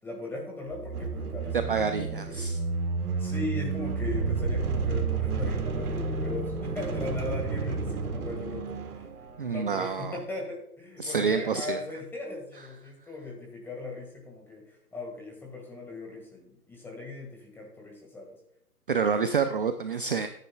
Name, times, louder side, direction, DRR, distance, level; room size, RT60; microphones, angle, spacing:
voice 1, 0.0-2.5 3.2-8.8 9.4-18.4, left 2 dB, 5° left, 0 dB, 1.7 m, -38 dB
sound 1, 0.7-9.5, right 4 dB, 65° right, 1.5 m, -31 dB
voice 2, 1.7-2.6 9.4-10.2 11.0-11.8 18.9-20.3, right 5 dB, 35° right, 9 dB, 0.5 m, -28 dB
13.5 x 9.9 x 2.3 m, 0.74 s
figure-of-eight pair, 140°, 47 cm